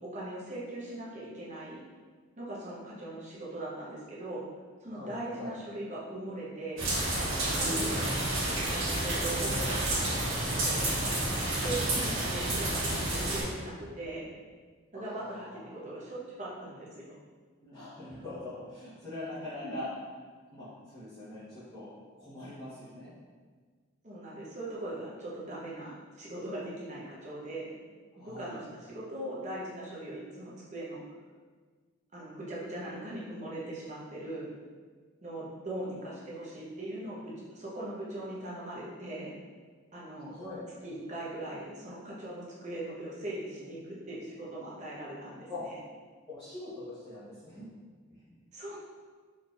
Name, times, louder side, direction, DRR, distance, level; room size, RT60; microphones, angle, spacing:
voice 1, 0.0-1.8 2.4-4.4 4.8-6.9 7.3-8.1 8.5-9.8 10.5-11.0 11.5-14.3 14.9-15.5 15.7-17.2 19.6-19.7 24.0-27.7 28.2-31.0 32.1-34.5 35.2-39.3 39.9-40.3 40.8-45.7 48.5-48.8, right 1 dB, 35° right, -6 dB, 0.9 m, -40 dB
voice 2, 4.9-5.5 7.5-8.0 14.9-15.7 17.6-19.9 20.5-21.9 22.2-23.1 28.1-28.6 40.3-40.6 45.5-45.6 46.3-47.7, left 1 dB, 20° left, -15 dB, 1.0 m, -42 dB
sound 1, 6.8-13.4, right 1 dB, 70° right, 1.5 m, -30 dB
4.2 x 3.4 x 2.4 m, 1.5 s
head